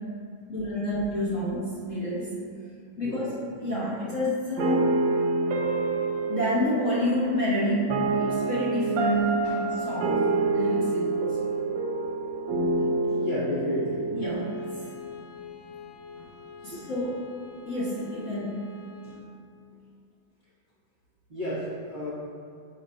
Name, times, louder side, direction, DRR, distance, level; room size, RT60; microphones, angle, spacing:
voice 1, 0.5-2.3 3.0-3.3 3.6-5.0 6.3-11.4 14.1-14.7 16.6-17.2 17.7-18.8, equal, 45° left, -8 dB, 1.2 m, -29 dB
voice 2, 3.0-3.4 9.4-9.6 13.1-14.1 16.6-16.8 19.0-19.2 21.3-22.1, left 1 dB, 35° right, -10 dB, 0.9 m, -33 dB
sound 1, 4.6-15.7, right 3 dB, 75° right, 1.2 m, -27 dB
Bowed string instrument, 14.2-19.3, left 8 dB, 85° left, 1.4 m, -48 dB
7.3 x 2.5 x 5.2 m, 2.3 s
omnidirectional pair, 2.2 m